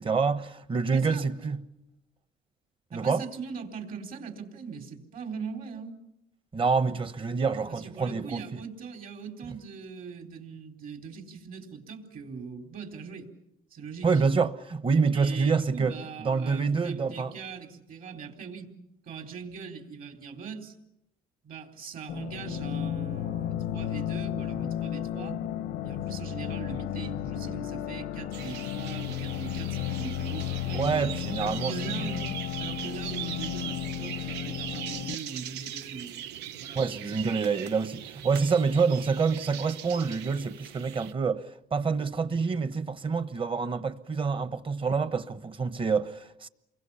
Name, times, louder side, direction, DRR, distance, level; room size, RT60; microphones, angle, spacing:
voice 1, 0.0-1.6 2.9-3.2 6.5-8.4 14.0-15.9 16.2-17.3 30.7-32.3 36.7-41.4 41.7-46.5, right 5 dB, 30° right, 1.2 m, -27 dB
voice 2, 0.9-1.2 2.9-6.0 7.7-13.3 13.7-14.2 15.1-18.7 19.0-20.8 21.4-25.4 25.8-30.8 31.4-32.3 32.6-37.3, right 5 dB, 60° right, 4.2 m, -41 dB
sound 1, 22.1-35.2, left 10 dB, 85° left, 0.9 m, -33 dB
sound 2, 28.3-41.1, right 11 dB, 85° right, 0.8 m, -40 dB
29.5 x 23.5 x 5.8 m
cardioid pair, 110°, 17 cm